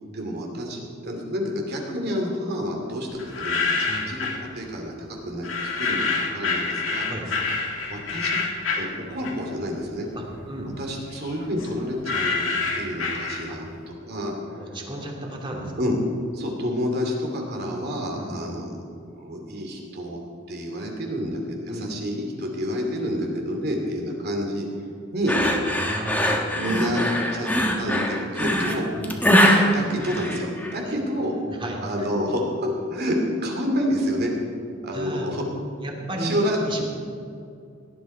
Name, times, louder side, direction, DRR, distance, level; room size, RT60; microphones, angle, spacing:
voice 1, 0.0-7.1 7.9-8.4 8.7-10.1 10.8-12.5 12.7-14.6 15.8-16.0 16.3-18.6 19.2-20.2 20.5-25.4 26.5-27.0 27.3-27.5 27.8-28.9 29.7-31.3 31.8-33.2 33.4-34.3 34.8-35.4 36.2-36.6, equal, 55° right, 1 dB, 2.8 m, -29 dB
sound 1, 3.2-4.4 5.4-9.7 10.0-13.8, left 4 dB, 75° left, 2.2 m, -27 dB
voice 2, 10.1-10.7 13.5-13.6 14.6-15.7 18.1-18.4 21.7-21.9 25.6-26.4 28.9-29.2 31.4-31.8 34.9-35.3 35.8-36.3 36.6-36.8, right 1 dB, 25° right, -1 dB, 2.5 m, -34 dB
sound 2, 25.3-30.8, equal, 10° left, 1.4 m, -22 dB
18.0 x 11.5 x 4.5 m, 2.4 s
head